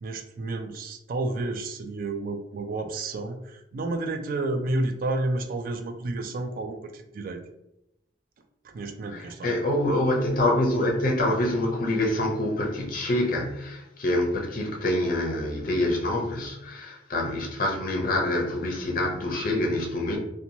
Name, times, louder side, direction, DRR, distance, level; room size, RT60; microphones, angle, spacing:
voice 1, 0.0-7.4 8.6-9.6, right 2 dB, 50° right, 0.3 m, -31 dB
voice 2, 9.1-20.2, left 1 dB, 50° left, 0.6 m, -26 dB
2.9 x 2.2 x 2.6 m
head